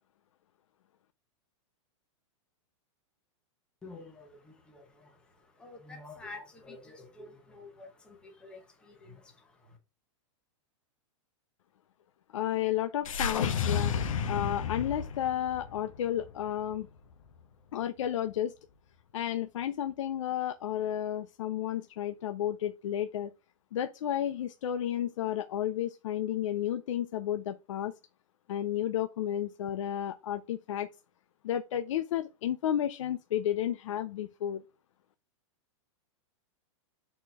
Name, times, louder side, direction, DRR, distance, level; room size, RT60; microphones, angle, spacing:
voice 1, 3.8-9.8, left 3 dB, 5° left, 1.0 m, -49 dB
voice 2, 12.3-14.0 14.2-16.9 17.7-18.5 19.1-23.3 23.7-27.9 28.5-30.9 31.4-34.6, left 11 dB, 70° left, 0.5 m, -32 dB
sound 1, 13.1-17.4, left 7 dB, 90° left, 1.2 m, -32 dB
6.4 x 4.3 x 3.5 m
supercardioid pair, 180°, 17 cm